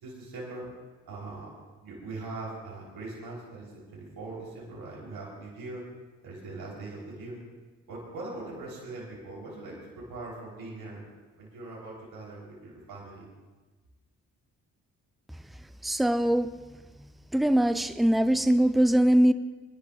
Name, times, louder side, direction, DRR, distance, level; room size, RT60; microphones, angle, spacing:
voice 1, 0.0-0.7 1.1-1.5 1.8-5.8 6.2-7.4 7.9-11.0 11.4-13.3, right 2 dB, 70° right, -5 dB, 3.5 m, -41 dB
voice 2, 15.8-16.5 17.3-19.3, right 1 dB, ahead, 10 dB, 0.6 m, -22 dB
26.0 x 11.0 x 2.4 m, 1.3 s
supercardioid pair, 45°, 37 cm